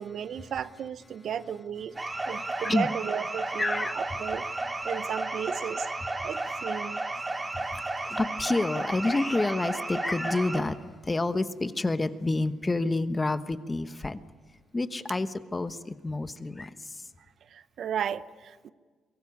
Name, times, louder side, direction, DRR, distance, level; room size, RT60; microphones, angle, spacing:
voice 1, 0.0-2.0 2.3-4.4 4.8-5.9 6.2-7.1 17.5-18.7, right 8 dB, 65° right, 14 dB, 0.7 m, -34 dB
voice 2, 2.0-2.9 3.6-4.2 6.2-6.3 7.2-14.2 14.7-17.0, left 2 dB, 20° left, 11 dB, 1.1 m, -29 dB
sound 1, 2.0-10.6, right 2 dB, 20° right, 2.5 m, -33 dB
23.0 x 17.5 x 9.8 m, 1.5 s
cardioid pair, 90°, 0 cm